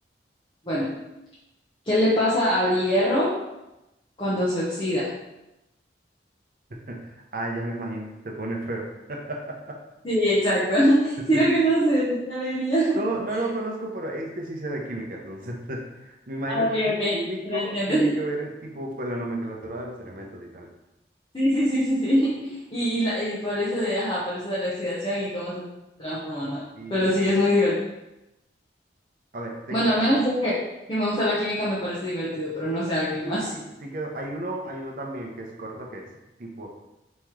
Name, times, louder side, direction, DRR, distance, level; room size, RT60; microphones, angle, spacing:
voice 1, 0.7-1.0 1.8-3.4 4.2-5.1 10.0-13.0 16.5-17.2 17.4-18.1 21.3-25.6 26.0-26.6 26.9-27.8 29.7-30.6 30.9-33.5, equal, 25° left, -8 dB, 0.8 m, -23 dB
voice 2, 6.7-9.8 11.3-11.4 12.9-16.7 17.1-20.7 26.8-27.3 29.3-30.0 33.2-36.1 36.4-36.7, right 1 dB, 50° right, 0 dB, 0.8 m, -33 dB
4.4 x 3.1 x 3.6 m, 0.95 s
head